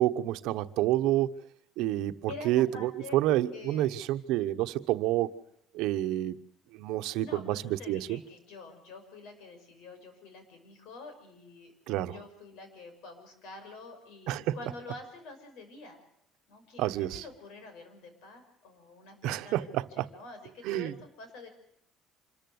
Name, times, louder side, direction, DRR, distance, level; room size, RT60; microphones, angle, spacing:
voice 1, 0.0-1.3 1.8-2.1 2.4-5.3 5.7-6.4 6.7-8.2 11.9-12.1 14.3-14.6 16.8-17.2 19.2-20.1 20.6-20.9, right 14 dB, 80° right, 1.0 m, -28 dB
voice 2, 2.3-3.9 7.0-16.0 16.5-21.5, left 3 dB, 80° left, 5.9 m, -47 dB
26.0 x 14.0 x 8.0 m
cardioid pair, 165°, 0 cm